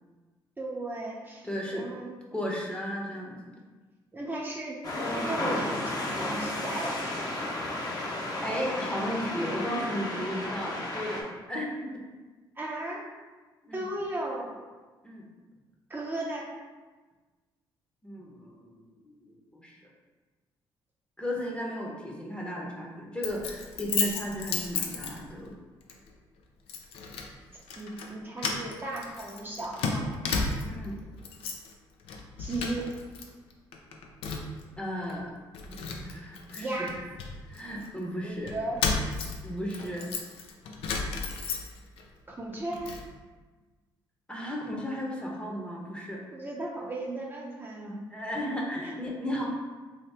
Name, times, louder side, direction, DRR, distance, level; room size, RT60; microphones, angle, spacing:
voice 1, 0.6-2.1 4.1-7.0 12.6-13.0 13.7-14.5 15.9-16.5 27.8-30.1 32.4-32.9 36.5-37.0 38.2-38.8 42.3-42.9 46.3-48.0 48.8-48.9, right 2 dB, 20° right, -4 dB, 0.6 m, -35 dB
voice 2, 1.4-1.8 2.3-3.4 8.4-12.0 13.6-13.8 15.0-15.2 18.0-19.9 21.2-25.5 30.6-31.0 34.8-35.3 35.7-36.8 37.5-38.6 39.4-40.1 44.3-46.2 48.1-49.5, equal, 10° left, -2 dB, 0.7 m, -35 dB
sound 1, 4.8-11.2, left 2 dB, 40° left, 0.7 m, -33 dB
Keys jangling, 23.2-25.5 25.9-26.1 26.7-27.3 27.6-28.1 28.4-30.9 31.2-31.7 32.0-33.2 33.5-34.6 35.1-35.2 35.5-37.9 38.5-42.0 42.4-43.1, left 4 dB, 80° left, 0.4 m, -33 dB
2.8 x 2.7 x 3.3 m, 1.3 s
supercardioid pair, 75°, 10 cm